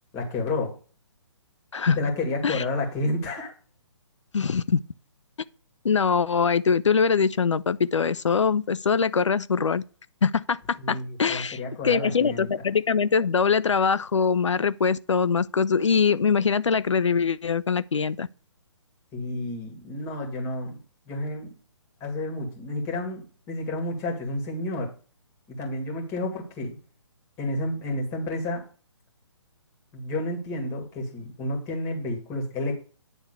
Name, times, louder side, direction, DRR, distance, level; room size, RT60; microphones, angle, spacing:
voice 1, 0.1-0.7 1.8-3.5 10.8-12.5 19.1-20.8 21.1-21.5 22.0-24.9 25.5-26.8 27.4-28.6 29.9-32.7, left 2 dB, 20° left, 2.1 m, -30 dB
voice 2, 4.3-4.8 5.8-9.8 10.2-18.3, left 6 dB, 75° left, 0.4 m, -23 dB
9.5 x 3.5 x 6.7 m
figure-of-eight pair, 135°, 15 cm